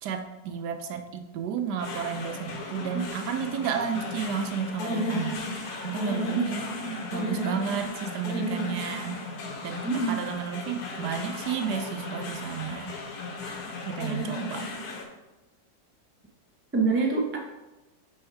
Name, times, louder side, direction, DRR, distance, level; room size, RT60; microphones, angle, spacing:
voice 1, 0.0-5.5 5.8-6.6 7.1-9.2 9.6-12.9 13.9-14.7, right 7 dB, 75° right, 7 dB, 1.2 m, -32 dB
sound 1, 1.8-15.0, left 1 dB, 65° left, 1.4 m, -34 dB
voice 2, 6.3-7.0 9.8-10.2 16.7-17.4, right 4 dB, 20° right, 0 dB, 0.3 m, -27 dB
6.6 x 3.5 x 4.6 m, 1.1 s
omnidirectional pair, 1.8 m